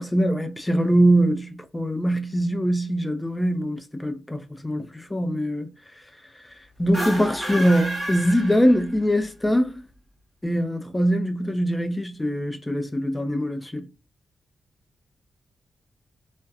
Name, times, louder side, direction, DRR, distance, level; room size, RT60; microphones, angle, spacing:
voice 1, 0.0-5.7 6.8-9.8 10.4-13.9, equal, 15° left, 0.5 m, -23 dB
sound 1, 6.8-9.2, right 1 dB, 30° right, 1.0 m, -31 dB
2.3 x 2.1 x 2.6 m
cardioid pair, 75°, 0 cm